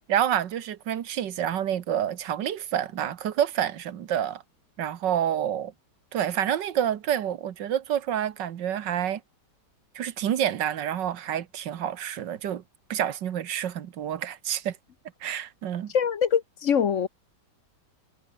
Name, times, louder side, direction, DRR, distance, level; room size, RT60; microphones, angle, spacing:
voice 1, 0.1-4.4 4.8-5.7 6.1-9.2 10.0-12.6 12.9-14.8 15.2-15.9, right 10 dB, 75° right, 1.8 m, -28 dB
voice 2, 15.9-17.1, left 7 dB, 55° left, 1.1 m, -23 dB
omnidirectional pair, 1.9 m